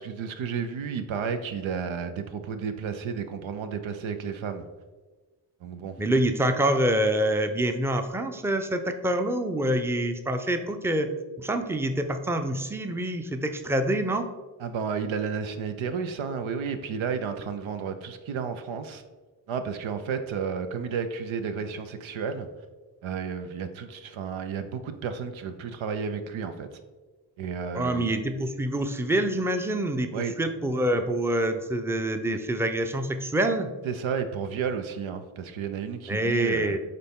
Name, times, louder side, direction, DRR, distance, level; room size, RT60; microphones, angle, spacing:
voice 1, 0.0-4.6 5.6-6.0 14.6-19.0 19.5-22.5 23.0-26.8 27.4-28.1 30.1-30.3 32.3-32.4 33.8-36.7, right 6 dB, 85° right, 8 dB, 0.7 m, -32 dB
voice 2, 6.0-11.1 11.4-14.3 27.7-30.1 30.4-33.7 36.1-36.8, right 1 dB, 5° right, 7 dB, 0.6 m, -26 dB
6.6 x 4.0 x 3.6 m, 1.3 s
cardioid pair, 50°, 46 cm